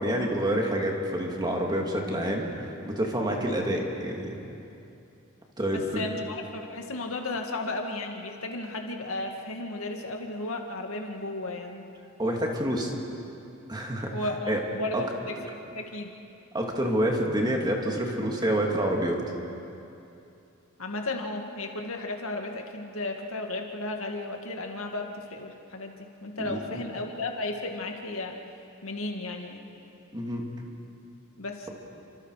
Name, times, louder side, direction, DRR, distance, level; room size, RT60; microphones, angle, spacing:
voice 1, 0.0-4.4 5.6-6.0 12.2-12.9 13.7-14.1 14.5-14.6 14.9-15.0 16.5-19.2 26.4-26.8 30.1-30.4, right 1 dB, 20° right, 0 dB, 2.8 m, -28 dB
voice 2, 5.7-11.9 14.1-15.4 15.7-16.1 20.8-28.3 28.8-29.6 31.4-31.7, left 2 dB, 80° left, 2 dB, 2.2 m, -34 dB
29.5 x 25.5 x 5.1 m, 2.7 s
head